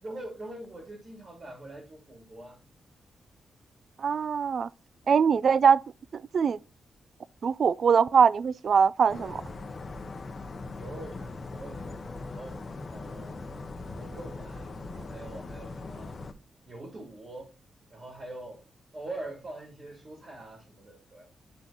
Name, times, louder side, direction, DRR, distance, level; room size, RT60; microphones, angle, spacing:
voice 1, 0.0-2.6 10.8-12.0 12.3-13.4 13.9-16.1 16.7-17.5 17.9-18.6 18.9-21.3, right 2 dB, 40° right, 2.6 m, -43 dB
voice 2, 4.0-4.7 5.1-5.8 6.1-6.6 7.4-9.4, right 6 dB, 55° right, 0.3 m, -22 dB
sound 1, 9.1-16.3, left 3 dB, 40° left, 0.8 m, -40 dB
11.0 x 4.0 x 2.8 m
cardioid pair, 85°, 0 cm